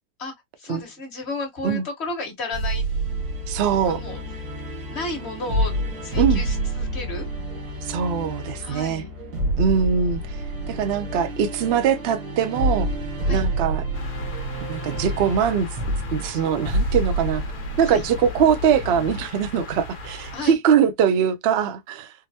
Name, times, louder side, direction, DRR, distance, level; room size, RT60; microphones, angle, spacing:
voice 1, 0.6-2.8 3.9-4.2 4.9-7.3 8.6-9.1 13.3-13.4 17.8-18.0 20.3-20.6, left 2 dB, 45° left, 1.5 m, -33 dB
sound 1, 2.5-19.3, right 1 dB, 85° right, 1.8 m, -28 dB
voice 2, 3.5-4.0 6.2-6.4 7.8-9.0 9.6-10.4 10.7-12.9 13.3-13.9 14.7-15.7 16.1-17.4 17.8-22.1, right 7 dB, 65° right, 0.6 m, -22 dB
sound 2, 13.9-20.5, left 1 dB, 80° left, 1.4 m, -39 dB
3.8 x 2.0 x 2.7 m
omnidirectional pair, 1.7 m